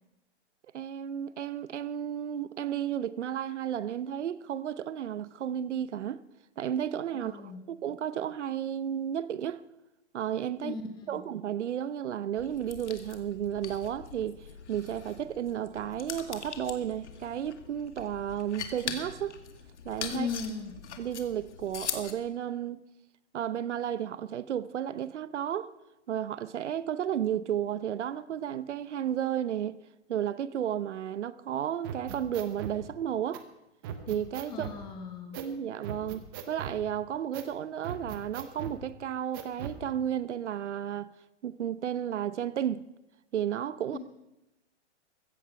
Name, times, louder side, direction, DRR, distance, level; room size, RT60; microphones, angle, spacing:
voice 1, 0.7-6.2 6.6-9.6 10.1-10.7 11.1-19.4 19.8-20.3 21.0-22.8 23.3-25.7 26.1-29.8 30.1-33.4 34.1-34.7 35.4-41.1 41.4-42.8 43.3-44.0, right 10 dB, 75° right, 0.8 m, -33 dB
voice 2, 7.1-7.6 10.6-11.3 20.1-20.8 34.5-35.4 43.9-44.0, left 5 dB, 10° left, 1.1 m, -38 dB
sound 1, 12.4-22.1, left 7 dB, 70° left, 2.2 m, -42 dB
sound 2, 31.8-32.8 33.3-33.4 33.8-34.8 35.3-35.5 35.8-36.8 37.3-37.5 37.8-38.8 39.3-39.8, right 8 dB, 20° right, 0.8 m, -39 dB
15.5 x 15.0 x 5.8 m
hypercardioid pair, 170°, 35 cm